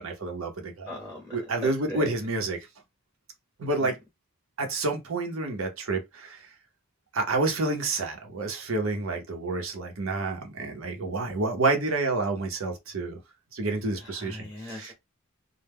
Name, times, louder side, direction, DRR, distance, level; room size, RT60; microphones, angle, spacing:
voice 1, 0.0-0.9 1.3-2.7 3.6-4.0 4.6-6.5 7.1-13.2 13.5-14.9, right 3 dB, 75° right, 0.7 m, -29 dB
voice 2, 0.9-1.3 1.6-2.1 14.2-14.9, equal, 5° right, 0.7 m, -38 dB
2.2 x 2.1 x 3.4 m
head